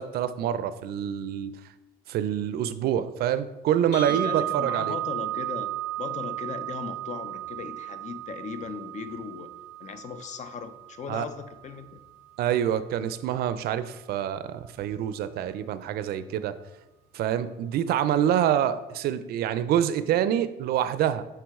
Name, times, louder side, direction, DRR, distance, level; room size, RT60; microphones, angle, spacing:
voice 1, 0.0-1.6 2.1-4.9 11.1-11.3 12.4-16.5 17.1-21.2, right 10 dB, 70° right, 13 dB, 0.4 m, -26 dB
sound 1, 3.9-12.0, right 13 dB, 70° left, 2.2 m, -34 dB
voice 2, 4.1-9.5 9.8-12.0, left 6 dB, 45° left, 10 dB, 0.5 m, -38 dB
6.1 x 4.7 x 3.5 m, 1.0 s
cardioid pair, 110°, 17 cm